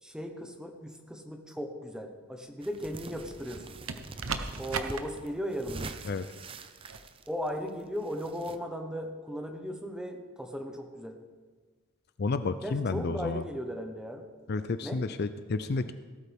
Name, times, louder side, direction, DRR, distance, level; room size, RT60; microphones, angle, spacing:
voice 1, 0.0-3.7 4.6-5.9 7.3-11.2 12.6-14.2 14.8-15.0, equal, 5° right, 3 dB, 1.1 m, -37 dB
sound 1, 2.6-8.6, right 3 dB, 25° right, 0.6 m, -45 dB
sound 2, 2.8-3.4 3.9-5.0 6.8-7.0, right 5 dB, 85° right, 0.9 m, -36 dB
voice 2, 12.2-13.4 14.5-15.9, left 3 dB, 50° left, 11 dB, 0.4 m, -31 dB
18.0 x 12.5 x 3.6 m, 1.4 s
head